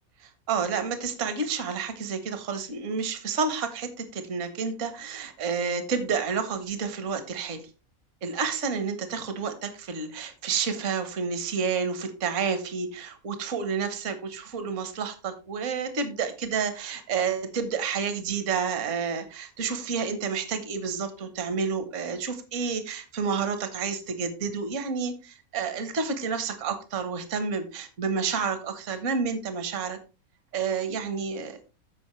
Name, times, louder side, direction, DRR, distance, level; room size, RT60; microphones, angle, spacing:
voice 1, 0.2-7.6 8.2-30.0 30.5-31.7, right 5 dB, 60° right, 9 dB, 1.4 m, -30 dB
14.5 x 5.1 x 3.1 m, 0.32 s
omnidirectional pair, 1.5 m